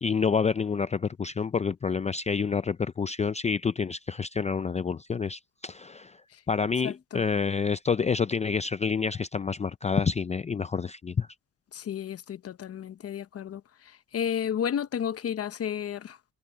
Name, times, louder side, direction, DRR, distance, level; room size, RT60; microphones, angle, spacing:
voice 1, 0.0-6.2 6.5-11.3, left 5 dB, 25° left, 0.5 m, -28 dB
voice 2, 6.8-7.2 11.7-16.2, left 8 dB, 50° left, 0.9 m, -32 dB
cardioid pair, 90°, 30 cm